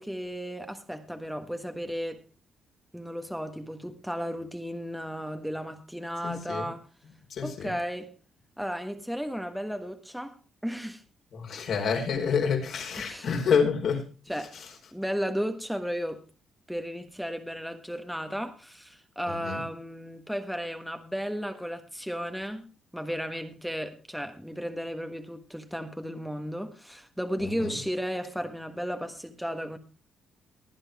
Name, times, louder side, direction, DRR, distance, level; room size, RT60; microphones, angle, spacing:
voice 1, 0.0-2.2 2.9-6.8 7.4-8.1 8.6-11.0 13.0-13.3 14.3-14.6 14.9-16.2 16.7-29.8, equal, ahead, 1.5 m, -34 dB
voice 2, 6.2-6.7 7.3-7.8 11.3-14.1 14.5-14.7 19.3-19.6 27.4-27.7, left 6 dB, 65° left, 4.5 m, -28 dB
19.5 x 9.7 x 3.6 m
cardioid pair, 90°, 0 cm